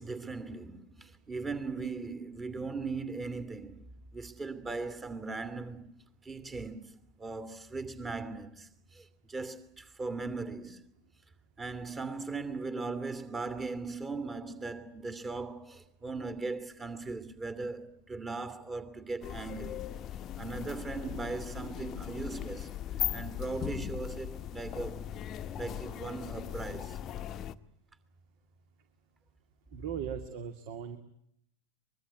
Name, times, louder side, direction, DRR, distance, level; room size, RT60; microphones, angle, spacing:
voice 1, 0.0-5.9 6.2-10.8 11.6-19.9 20.4-22.7 23.1-25.1 25.5-27.0, right 3 dB, 15° right, 2.7 m, -39 dB
sound 1, 19.2-27.5, left 11 dB, 30° left, 1.1 m, -39 dB
voice 2, 29.7-31.0, right 8 dB, 50° right, 2.3 m, -38 dB
24.0 x 22.0 x 9.5 m
figure-of-eight pair, 90°, 0 cm